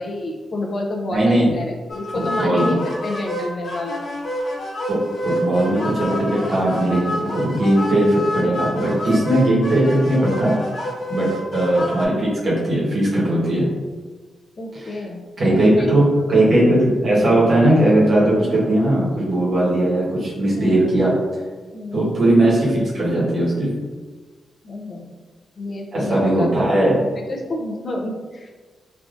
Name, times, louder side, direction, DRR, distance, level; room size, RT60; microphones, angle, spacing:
voice 1, 0.0-4.0 11.2-11.3 14.6-15.9 20.5-20.7 21.7-22.2 24.6-25.1 25.6-26.5 27.1-28.6, left 2 dB, 40° left, 0 dB, 0.4 m, -29 dB
voice 2, 1.1-1.5 2.1-2.7 4.9-10.5 11.1-13.7 14.7-14.9 15.4-21.1 21.9-23.7 25.9-27.0, right 1 dB, 55° right, -7 dB, 1.2 m, -18 dB
sound 1, 1.9-12.1, left 1 dB, 65° left, 1.1 m, -28 dB
3.3 x 2.5 x 2.5 m, 1.4 s
wide cardioid pair, 145°, 0 cm